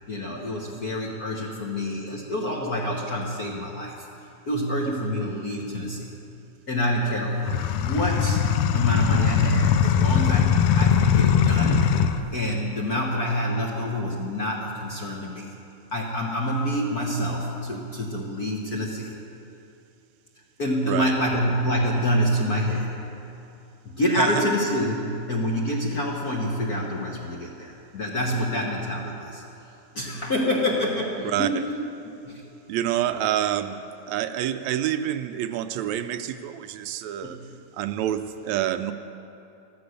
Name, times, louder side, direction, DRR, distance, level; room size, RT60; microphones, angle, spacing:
voice 1, 0.1-3.9 4.5-6.1 6.7-8.4 8.7-11.9 12.3-15.5 15.9-19.1 20.6-22.9 23.8-29.4 29.9-31.6 32.2-32.4 37.2-37.4, equal, 45° left, -2 dB, 1.3 m, -27 dB
sound 1, 7.5-12.2, left 8 dB, 80° left, 1.7 m, -21 dB
voice 2, 31.2-31.6 32.7-33.8 34.1-37.4 37.7-38.9, right 11 dB, 80° right, 10 dB, 1.8 m, -27 dB
14.0 x 14.0 x 6.6 m, 2.7 s
omnidirectional pair, 3.3 m